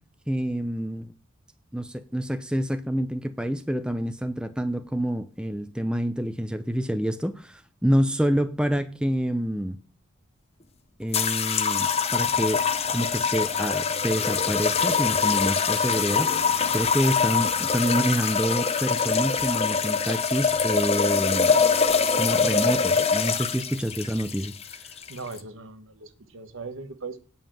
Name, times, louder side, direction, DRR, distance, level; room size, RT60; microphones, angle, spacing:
voice 1, 0.3-1.1 1.7-9.8 11.0-21.6 22.2-24.5, equal, 5° right, 0.6 m, -27 dB
sound 1, 11.1-25.4, left 5 dB, 30° left, 0.8 m, -24 dB
voice 2, 25.1-27.2, right 4 dB, 70° right, 1.3 m, -39 dB
9.1 x 5.4 x 7.6 m
head